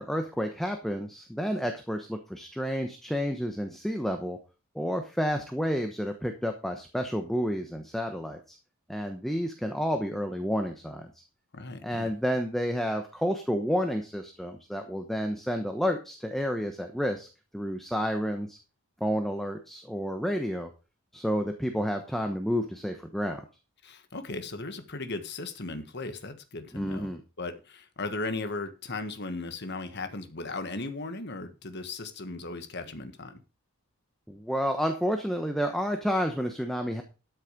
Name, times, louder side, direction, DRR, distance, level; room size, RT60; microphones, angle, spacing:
voice 1, 0.0-4.4 4.7-8.6 8.9-11.1 11.8-17.3 17.5-18.6 19.0-20.7 21.1-23.4 26.7-27.2 34.3-37.0, equal, ahead, 5 dB, 1.0 m, -30 dB
voice 2, 11.5-12.1 23.8-27.1 27.4-33.4, left 3 dB, 55° left, 9 dB, 1.5 m, -37 dB
12.5 x 6.5 x 5.2 m, 0.32 s
head